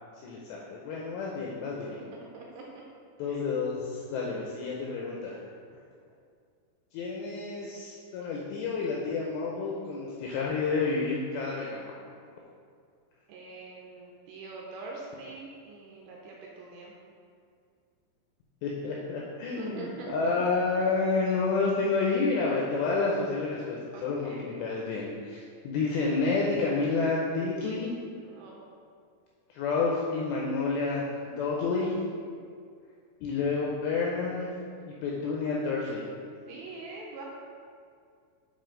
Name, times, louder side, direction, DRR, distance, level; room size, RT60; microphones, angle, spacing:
voice 1, 0.2-2.0 3.2-5.4 6.9-11.9 18.6-27.9 29.5-32.0 33.2-34.5 34.9-36.0, left 4 dB, 85° left, -3 dB, 2.5 m, -29 dB
voice 2, 13.3-16.9 19.6-20.5 23.9-24.5 28.3-28.5 36.5-37.2, right 3 dB, 85° right, -2 dB, 2.7 m, -43 dB
7.6 x 5.0 x 3.8 m, 2.3 s
omnidirectional pair, 5.7 m